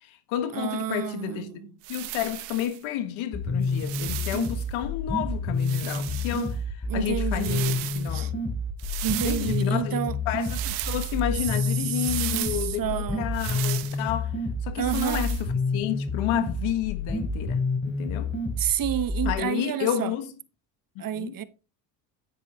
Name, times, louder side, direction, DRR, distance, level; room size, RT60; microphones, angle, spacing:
voice 1, 0.0-1.6 1.9-8.3 9.2-10.0 10.3-14.3 14.6-18.3 19.2-20.3 21.0-21.4, left 12 dB, 75° left, 1.7 m, -31 dB
voice 2, 0.5-1.7 6.9-7.8 8.1-8.3 9.0-10.1 11.8-13.3 14.8-15.3 18.6-20.2 21.0-21.4, right 10 dB, 45° right, 1.0 m, -30 dB
sound 1, 1.8-2.8 3.6-4.6 5.6-6.5 7.3-8.1 8.8-9.7 10.4-11.2 11.9-12.7 13.3-14.0 14.8-15.4, right 17 dB, 90° right, 1.1 m, -36 dB
sound 2, 3.3-19.3, left 2 dB, 25° left, 3.7 m, -29 dB
9.9 x 9.3 x 3.0 m
supercardioid pair, 75°, 48 cm